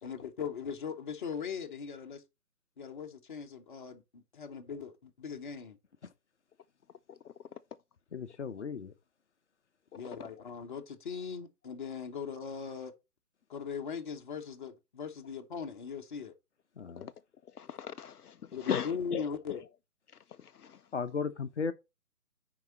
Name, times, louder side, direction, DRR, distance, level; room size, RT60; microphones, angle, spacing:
voice 1, 0.0-2.2 2.8-5.8 9.9-12.9 13.5-16.3 18.5-19.6, left 6 dB, 30° left, 1.2 m, -39 dB
voice 2, 8.1-8.9 16.8-17.1 20.9-21.7, left 5 dB, 50° left, 0.9 m, -35 dB
voice 3, 17.6-19.2 20.4-20.8, left 8 dB, 75° left, 0.6 m, -37 dB
9.4 x 4.9 x 4.2 m
figure-of-eight pair, 145°, 46 cm